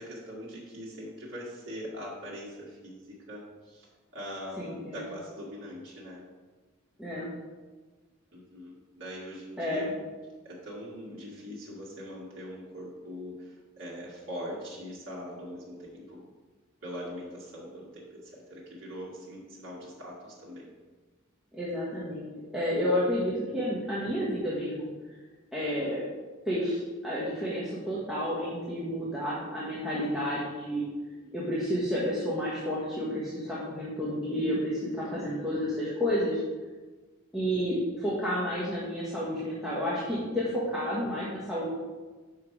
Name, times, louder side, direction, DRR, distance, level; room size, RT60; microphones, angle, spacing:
voice 1, 0.0-6.2 8.3-9.9 10.4-16.2 16.8-20.7 31.2-31.3 35.0-35.3 40.5-40.6, equal, 65° right, -6 dB, 2.0 m, -42 dB
voice 2, 4.6-5.0 7.0-7.3 9.6-9.9 21.5-22.3 22.5-24.9 25.5-26.0 26.4-30.8 31.3-36.4 37.3-41.7, equal, 5° right, -9 dB, 1.2 m, -30 dB
5.8 x 5.7 x 4.6 m, 1.3 s
head